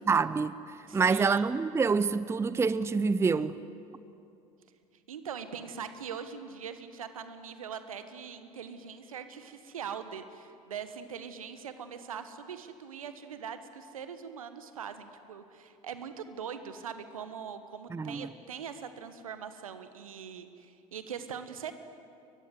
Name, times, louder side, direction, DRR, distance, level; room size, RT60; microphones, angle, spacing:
voice 1, 0.1-0.6 0.9-3.6 17.9-18.3, right 5 dB, 15° right, 0.6 m, -26 dB
voice 2, 0.9-1.5 5.1-21.7, right 7 dB, 75° right, 1.5 m, -42 dB
28.5 x 23.0 x 8.0 m
figure-of-eight pair, 65°, 18 cm